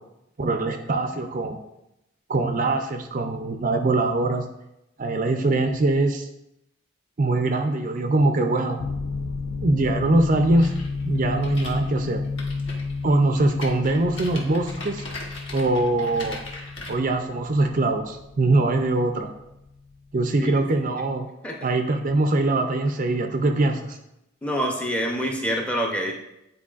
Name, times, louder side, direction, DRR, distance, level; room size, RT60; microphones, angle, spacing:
voice 1, 0.4-1.6 2.3-4.5 5.0-6.3 7.2-8.8 9.6-10.7 11.0-12.2 13.0-15.0 15.5-16.4 16.9-19.3 20.1-21.3 21.6-24.0, right 2 dB, 40° right, 5 dB, 0.4 m, -22 dB
sound 1, 8.8-20.1, left 4 dB, 80° left, 0.4 m, -32 dB
sound 2, 10.6-16.9, left 2 dB, 60° left, 1.1 m, -39 dB
voice 2, 24.4-26.1, equal, 5° left, 0 dB, 0.6 m, -26 dB
9.6 x 4.4 x 2.4 m, 0.88 s
head